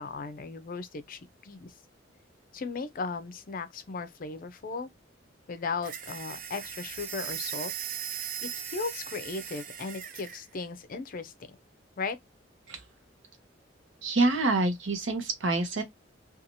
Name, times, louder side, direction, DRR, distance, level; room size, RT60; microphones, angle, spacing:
voice 1, 0.0-1.7 2.5-4.9 5.5-7.7 8.4-11.3 12.0-12.2, left 4 dB, 45° left, 0.5 m, -36 dB
sound 1, 5.8-10.4, right 9 dB, 45° right, 0.4 m, -38 dB
voice 2, 14.0-15.8, right 2 dB, 75° right, 0.8 m, -26 dB
2.8 x 2.3 x 2.5 m
head